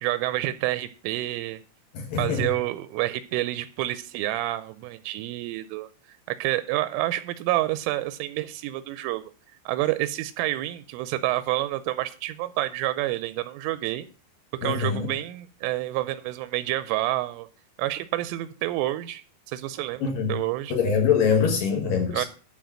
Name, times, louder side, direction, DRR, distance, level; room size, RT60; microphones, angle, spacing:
voice 1, 0.0-1.6 2.2-5.9 6.3-9.3 9.7-14.1 14.6-17.5 17.8-20.7 22.1-22.3, right 16 dB, 85° right, 13 dB, 3.1 m, -28 dB
voice 2, 1.9-2.5 14.6-15.1 20.0-20.3 20.7-22.3, left 6 dB, 60° left, 3 dB, 2.5 m, -24 dB
11.5 x 4.7 x 7.3 m, 0.38 s
omnidirectional pair, 5.6 m